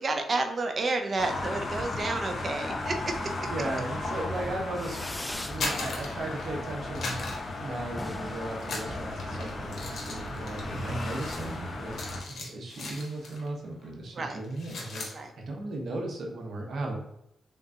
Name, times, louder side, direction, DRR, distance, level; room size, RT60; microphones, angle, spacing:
voice 1, 0.0-3.5 14.1-14.4 15.1-15.3, right 3 dB, 50° right, 5 dB, 0.5 m, -30 dB
sound 1, 1.2-12.2, left 2 dB, 50° left, 1.0 m, -35 dB
voice 2, 3.5-5.2 5.5-7.3 7.6-15.0 15.5-17.0, right 2 dB, 70° right, 1 dB, 1.0 m, -36 dB
Fireworks, 4.7-5.6 6.0-6.6 6.8-6.9 7.2-7.3 7.5-7.6 7.9-9.5, left 1 dB, 15° left, 0.3 m, -41 dB
sound 2, 5.5-6.6 6.9-8.2 8.6-13.5 13.8-14.0 14.4-15.2, left 3 dB, 70° left, 1.2 m, -38 dB
3.8 x 3.6 x 2.7 m, 0.80 s
cardioid pair, 75°, 0 cm